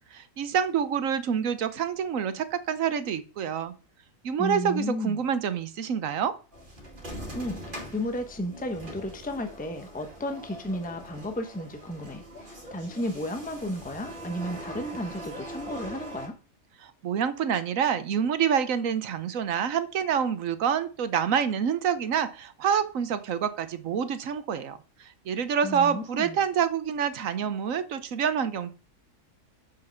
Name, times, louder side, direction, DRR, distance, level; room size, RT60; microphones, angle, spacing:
voice 1, 0.1-3.7 4.2-6.3 16.8-28.7, right 7 dB, 75° right, 1.3 m, -27 dB
voice 2, 4.4-5.2 7.3-16.4 25.6-26.4, left 1 dB, 5° left, 0.9 m, -33 dB
sound 1, 6.5-16.3, equal, 40° right, 2.4 m, -42 dB
7.4 x 5.8 x 6.4 m
omnidirectional pair, 1.4 m